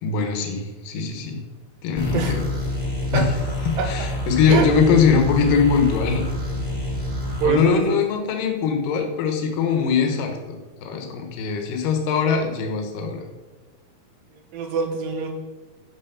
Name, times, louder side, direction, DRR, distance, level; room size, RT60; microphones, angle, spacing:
voice 1, 0.0-1.4 1.8-2.4 3.1-3.3 3.7-6.2 7.4-10.3 10.8-13.2, left 5 dB, 75° left, 3 dB, 2.8 m, -21 dB
sound 1, 2.0-7.5, left 1 dB, 5° right, 2.3 m, -27 dB
voice 2, 7.3-8.0 14.5-15.3, right 6 dB, 75° right, 4 dB, 3.0 m, -24 dB
11.0 x 5.3 x 6.9 m, 1.2 s
omnidirectional pair, 4.2 m